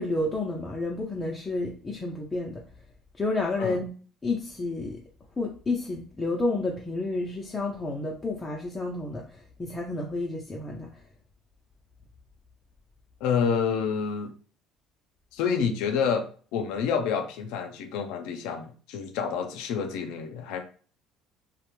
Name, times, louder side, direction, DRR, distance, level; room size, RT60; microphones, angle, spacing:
voice 1, 0.0-2.6 3.2-3.9 4.2-5.0 5.4-9.2 9.6-10.9, left 2 dB, 20° left, -1 dB, 0.5 m, -30 dB
voice 2, 13.2-14.3 15.3-20.6, left 6 dB, 80° left, 6 dB, 0.5 m, -28 dB
2.5 x 2.1 x 2.9 m, 0.41 s
cardioid pair, 115°, 0 cm